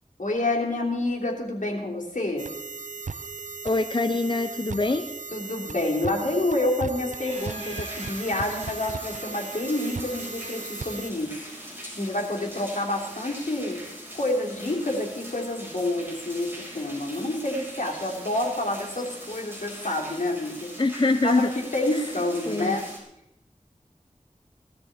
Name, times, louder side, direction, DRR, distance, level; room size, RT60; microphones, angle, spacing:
voice 1, 0.2-2.5 5.3-13.8 14.1-20.7 21.2-22.9, left 1 dB, 80° left, -1 dB, 3.3 m, -28 dB
sound 1, 2.4-11.1, right 4 dB, 75° right, 0.6 m, -37 dB
voice 2, 3.6-5.1 20.8-21.5 21.9-22.0 22.5-22.8, left 3 dB, 40° left, 8 dB, 0.8 m, -24 dB
Laughter, 7.1-10.5, right 1 dB, 50° right, 3.3 m, -46 dB
sound 2, 7.3-23.0, equal, 15° right, 6.0 m, -42 dB
18.5 x 13.5 x 4.2 m, 0.83 s
wide cardioid pair, 55°, 13 cm